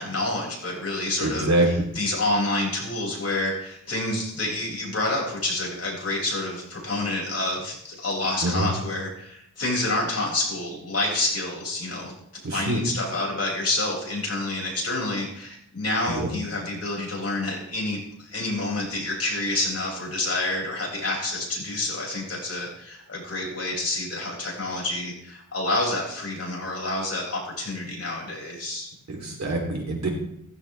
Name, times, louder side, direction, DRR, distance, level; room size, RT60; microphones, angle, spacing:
voice 1, 0.0-12.1 12.5-28.9, left 2 dB, 50° left, -3 dB, 7.5 m, -28 dB
voice 2, 1.2-1.7 8.4-8.7 12.4-12.8 16.1-16.3 29.1-30.1, right 2 dB, 55° right, 0 dB, 4.2 m, -25 dB
17.5 x 15.0 x 3.7 m, 0.74 s
wide cardioid pair, 145°, 32 cm